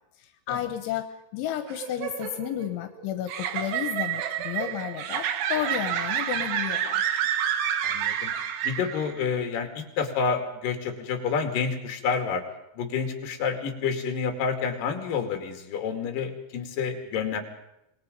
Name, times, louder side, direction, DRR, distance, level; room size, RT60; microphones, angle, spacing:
voice 1, 0.2-1.0 1.3-7.0, left 11 dB, 80° left, 8 dB, 3.4 m, -32 dB
sound 1, 1.6-9.3, right 9 dB, 70° right, 3.2 m, -29 dB
voice 2, 7.8-8.3 8.6-12.4 12.8-17.4, left 6 dB, 50° left, 5 dB, 3.6 m, -29 dB
26.0 x 21.5 x 5.3 m, 0.86 s
omnidirectional pair, 5.4 m